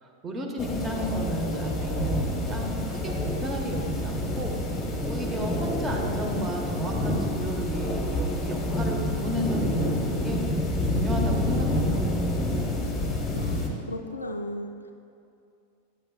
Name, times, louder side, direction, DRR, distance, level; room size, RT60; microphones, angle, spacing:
voice 1, 0.0-2.7 3.0-4.5 5.0-10.4 10.8-12.0, right 1 dB, 20° right, 1 dB, 1.0 m, -33 dB
sound 1, 0.6-13.7, left 1 dB, 20° left, 1.0 m, -28 dB
voice 2, 13.3-14.9, left 1 dB, 80° left, 5 dB, 0.3 m, -36 dB
9.1 x 7.7 x 2.3 m, 2.5 s
figure-of-eight pair, 90°, 0 cm